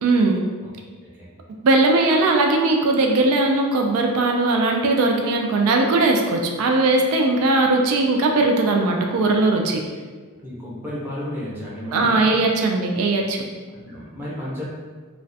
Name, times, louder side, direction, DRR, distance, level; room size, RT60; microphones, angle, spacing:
voice 1, 0.0-0.4 1.6-9.8 11.9-13.4, right 2 dB, 80° right, 3 dB, 0.3 m, -19 dB
voice 2, 10.4-12.5 13.7-14.6, left 1 dB, 10° right, -7 dB, 0.5 m, -33 dB
2.4 x 2.1 x 2.6 m, 1.5 s
head